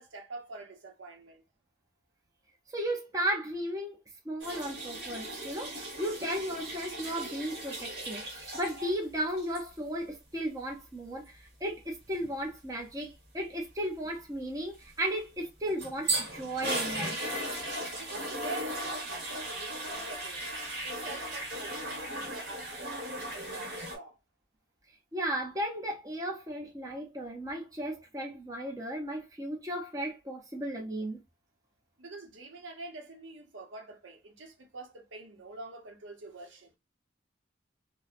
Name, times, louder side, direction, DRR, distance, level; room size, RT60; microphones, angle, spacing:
voice 1, 0.0-1.4 18.0-20.5 20.8-24.2 32.0-36.7, right 3 dB, 80° right, 0.7 m, -46 dB
voice 2, 2.7-3.9 4.2-8.2 8.5-17.2 25.1-31.2, right 1 dB, 20° right, 0.5 m, -35 dB
sound 1, 4.4-9.0 9.3-9.6 15.4-23.9, right 1 dB, 60° right, 1.2 m, -37 dB
3.0 x 2.0 x 2.4 m
head